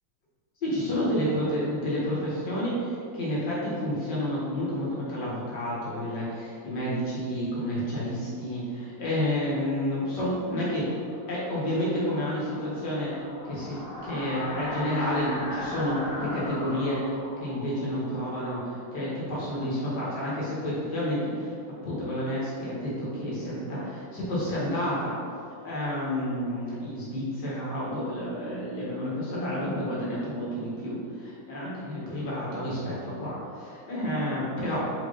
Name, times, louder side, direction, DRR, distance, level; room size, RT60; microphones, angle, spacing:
voice 1, 0.6-10.9 11.3-13.1 13.4-21.5 21.8-25.1 25.6-34.9, equal, 50° left, -7 dB, 2.2 m, -30 dB
sound 1, 10.7-19.4, left 1 dB, 75° left, 2.5 m, -39 dB
5.5 x 4.6 x 4.1 m, 2.4 s
omnidirectional pair, 2.4 m